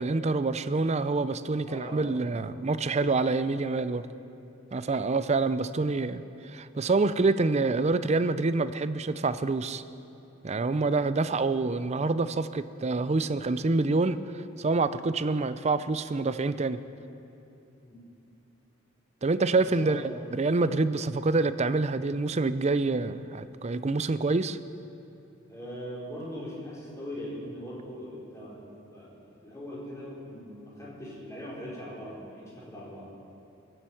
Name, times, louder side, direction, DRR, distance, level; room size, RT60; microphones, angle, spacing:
voice 1, 0.0-4.1 4.7-9.8 10.4-16.8 19.2-24.6, right 3 dB, 35° right, 13 dB, 0.5 m, -27 dB
voice 2, 1.7-2.1 4.8-5.0 17.8-18.0 19.5-20.0 25.5-33.0, equal, 15° left, -6 dB, 4.3 m, -41 dB
23.0 x 8.0 x 7.7 m, 2.8 s
head